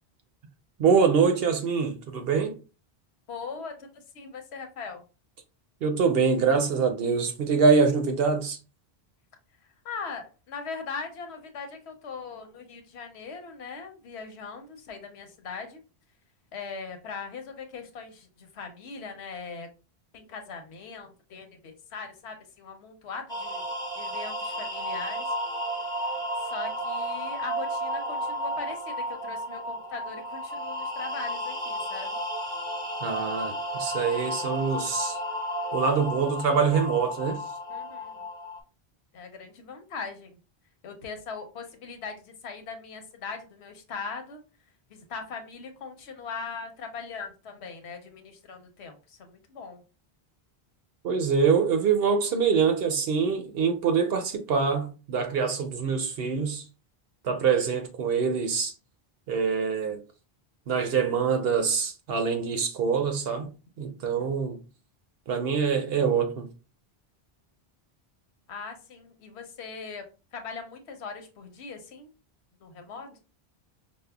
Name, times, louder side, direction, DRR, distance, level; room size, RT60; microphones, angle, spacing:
voice 1, 0.8-2.5 5.8-8.6 33.0-35.2 35.7-37.4 51.0-56.6 57.2-58.7 59.3-60.0 60.7-63.5 63.8-64.6 65.3-66.5, right 5 dB, 70° right, 0.8 m, -24 dB
voice 2, 3.3-5.0 9.8-15.8 16.5-19.7 20.1-23.6 23.9-25.3 26.4-32.2 37.7-38.2 39.1-40.4 40.8-44.4 44.9-49.8 54.0-54.2 55.8-56.0 57.2-57.5 64.0-64.3 68.5-70.1 70.3-72.1 72.6-73.2, left 5 dB, 85° left, 1.0 m, -40 dB
sound 1, 23.3-38.6, equal, 5° left, 0.7 m, -33 dB
5.3 x 2.0 x 2.2 m
omnidirectional pair, 1.1 m